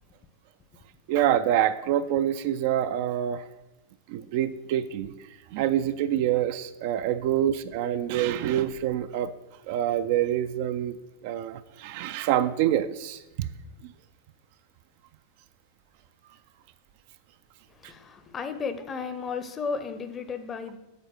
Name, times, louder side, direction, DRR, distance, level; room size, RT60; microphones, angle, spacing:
voice 1, 1.1-3.4 4.1-9.3 9.7-11.0 11.2-13.5 13.8-13.9 17.8-17.9, right 11 dB, 50° right, 11 dB, 0.3 m, -26 dB
voice 2, 17.7-20.8, left 5 dB, 25° left, 9 dB, 0.7 m, -34 dB
7.4 x 4.0 x 6.3 m, 0.98 s
figure-of-eight pair, 90°, 0 cm